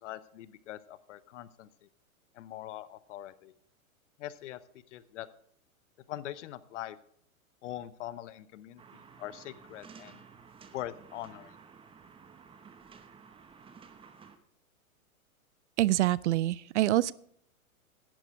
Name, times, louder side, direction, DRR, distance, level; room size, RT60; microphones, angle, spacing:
voice 1, 0.0-1.7 2.3-3.5 4.2-4.6 4.9-5.3 6.1-7.0 7.6-10.2 10.7-11.5, left 13 dB, 55° left, 16 dB, 0.9 m, -42 dB
sound 1, 8.8-14.4, right 6 dB, 10° right, 0.9 m, -53 dB
voice 2, 15.8-17.1, right 15 dB, 55° right, 22 dB, 0.5 m, -26 dB
11.5 x 9.9 x 4.5 m, 0.65 s
hypercardioid pair, 120°, 43 cm